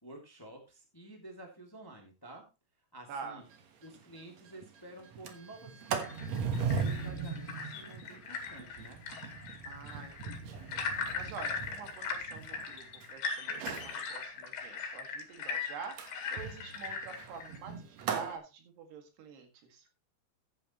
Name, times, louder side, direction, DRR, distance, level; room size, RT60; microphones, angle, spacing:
voice 1, 0.0-2.4 2.9-3.4 3.8-6.4 6.8-9.0, right 1 dB, 5° left, 1 dB, 1.8 m, -51 dB
voice 2, 3.1-3.4 9.7-19.9, right 5 dB, 90° right, 5 dB, 4.1 m, -47 dB
Sliding door, 3.5-3.6 3.9-4.0 4.4-4.7 5.1-13.1 13.5-14.0 16.0-18.4, right 5 dB, 60° right, 1.9 m, -38 dB
sound 1, 6.0-17.6, left 5 dB, 75° left, 3.8 m, -39 dB
14.5 x 8.6 x 3.0 m, 0.28 s
omnidirectional pair, 4.6 m